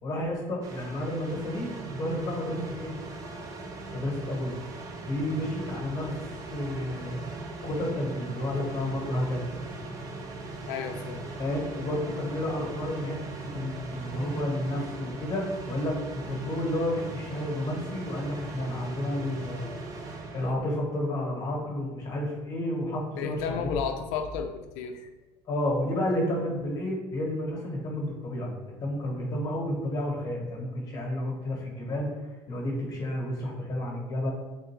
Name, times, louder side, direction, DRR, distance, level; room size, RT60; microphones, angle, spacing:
voice 1, 0.0-3.0 3.9-4.6 5.0-7.2 7.6-9.4 11.4-19.7 20.3-23.7 25.5-28.5 28.8-32.1 32.5-34.3, left 1 dB, 35° left, -2 dB, 1.1 m, -31 dB
sound 1, 0.6-20.5, right 3 dB, 30° right, 0.5 m, -39 dB
voice 2, 10.7-11.2 23.2-25.1, left 6 dB, 85° left, 5 dB, 0.4 m, -32 dB
3.7 x 2.5 x 4.3 m, 1.2 s
cardioid pair, 150°, 11 cm